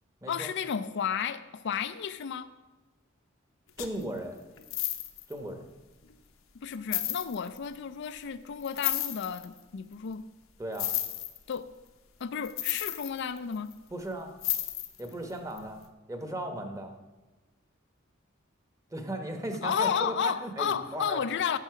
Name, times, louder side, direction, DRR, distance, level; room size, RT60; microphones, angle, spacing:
voice 1, 0.3-2.5 6.6-10.2 11.5-11.7 12.2-13.7 19.6-21.6, left 7 dB, 60° left, 11 dB, 0.4 m, -32 dB
sound 1, 3.8-4.0 4.6-5.3 6.1-6.2 6.7-7.6 8.6-9.5 10.7-11.6 12.4-13.7 14.4-15.1 15.6-15.7, left 14 dB, 75° left, 0.9 m, -32 dB
voice 2, 3.8-4.4 5.3-5.7 10.6-10.9 13.9-14.3 15.0-16.9 18.9-21.2, right 1 dB, 15° right, 5 dB, 1.1 m, -36 dB
9.9 x 7.2 x 5.8 m, 1.2 s
head